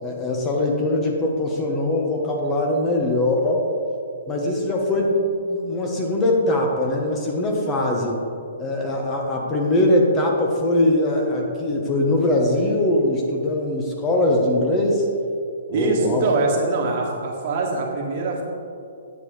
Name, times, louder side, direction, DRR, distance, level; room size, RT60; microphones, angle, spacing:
voice 1, 0.0-3.6 4.3-8.2 8.6-15.0 15.7-16.2, left 1 dB, 20° left, 0 dB, 1.3 m, -21 dB
voice 2, 15.7-18.4, right 3 dB, 45° right, -1 dB, 1.7 m, -23 dB
9.6 x 7.6 x 3.3 m, 2.5 s
hypercardioid pair, 135°, 0 cm